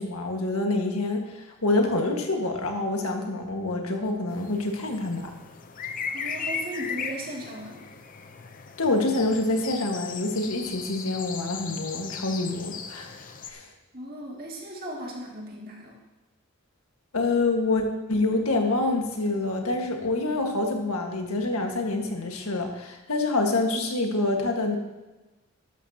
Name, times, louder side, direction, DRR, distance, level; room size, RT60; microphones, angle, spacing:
voice 1, 0.0-5.3 8.8-13.2 13.5-13.7 17.1-24.8, left 2 dB, 85° left, 3 dB, 1.7 m, -26 dB
sound 1, 4.3-13.5, left 6 dB, 40° left, 0.7 m, -37 dB
voice 2, 6.1-7.9 13.9-15.9, right 1 dB, 45° right, -2 dB, 2.4 m, -37 dB
13.0 x 12.0 x 2.9 m, 1.1 s
head